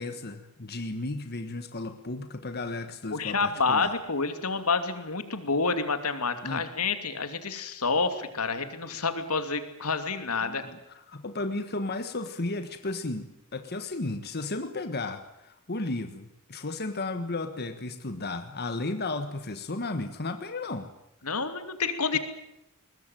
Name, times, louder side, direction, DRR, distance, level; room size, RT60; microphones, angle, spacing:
voice 1, 0.0-3.9 6.4-6.6 10.4-10.8 11.1-20.9, left 2 dB, 45° left, 8 dB, 1.5 m, -34 dB
voice 2, 3.1-10.7 21.2-22.2, left 4 dB, 85° left, 9 dB, 2.7 m, -28 dB
22.5 x 20.0 x 9.2 m, 0.86 s
head